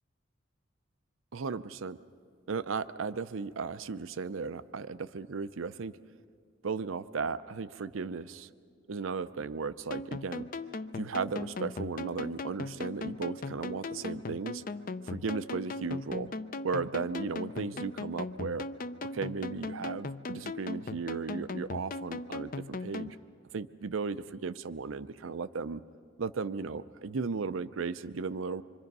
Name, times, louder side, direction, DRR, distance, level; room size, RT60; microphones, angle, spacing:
voice 1, 1.3-2.0 2.5-5.9 6.6-8.5 8.9-10.4 11.0-14.6 15.0-16.3 16.6-18.7 19.0-23.2 23.5-25.8 26.2-28.6, right 4 dB, 80° right, 14 dB, 0.6 m, -35 dB
sound 1, 9.9-23.1, left 3 dB, 45° left, 0.5 m, -39 dB
26.0 x 24.0 x 5.4 m, 2.2 s
head